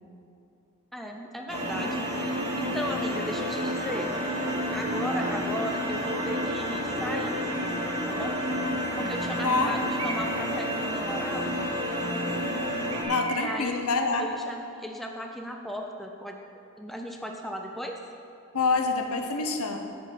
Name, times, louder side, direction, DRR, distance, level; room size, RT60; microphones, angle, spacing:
voice 1, 0.9-4.1 4.7-7.4 8.1-8.4 9.0-11.6 13.3-13.8 14.2-16.4 16.8-18.0, equal, ahead, 2 dB, 0.5 m, -36 dB
sound 1, 1.5-13.0, equal, 30° right, 1.5 m, -30 dB
Bird, 7.6-8.0 8.8-9.3 10.0-10.6 12.9-13.9, right 3 dB, 75° right, 0.9 m, -39 dB
voice 2, 9.4-9.7 13.0-14.3 18.5-19.8, left 3 dB, 85° left, 5 dB, 0.8 m, -26 dB
8.2 x 5.2 x 7.6 m, 2.6 s
head